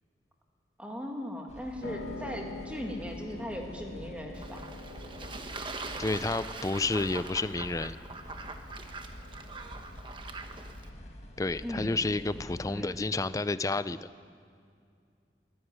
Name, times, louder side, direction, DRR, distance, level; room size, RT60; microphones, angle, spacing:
voice 1, 0.8-4.6 11.6-12.1 12.7-12.9, equal, 5° right, 1 dB, 2.1 m, -38 dB
sound 1, 1.5-12.8, equal, 40° left, 1.7 m, -47 dB
Piano, 1.8-11.8, left 3 dB, 90° left, 1.6 m, -47 dB
Fowl / Bird / Water, 4.3-10.9, right 3 dB, 25° right, 1.1 m, -42 dB
voice 2, 6.0-8.0 11.4-14.1, left 3 dB, 20° left, 14 dB, 0.4 m, -30 dB
22.0 x 13.0 x 9.5 m, 2.3 s
head